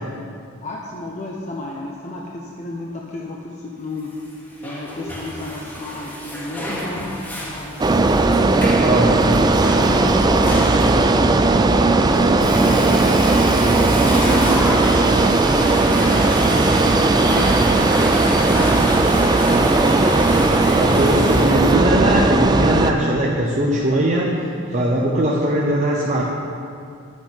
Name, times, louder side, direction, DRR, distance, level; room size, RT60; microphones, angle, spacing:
voice 1, 0.6-4.2 4.6-8.1 8.7-9.4 9.6-10.9 11.3-18.4 20.2-21.5, left 2 dB, 35° left, -2 dB, 0.7 m, -34 dB
Water / Toilet flush, 4.2-21.7, equal, 10° left, 1.4 m, -29 dB
sound 1, 7.8-22.9, right 2 dB, 20° right, 0.3 m, -16 dB
voice 2, 8.8-9.1 20.7-26.2, right 1 dB, 35° right, -3 dB, 0.7 m, -20 dB
9.9 x 8.5 x 4.5 m, 2.4 s
head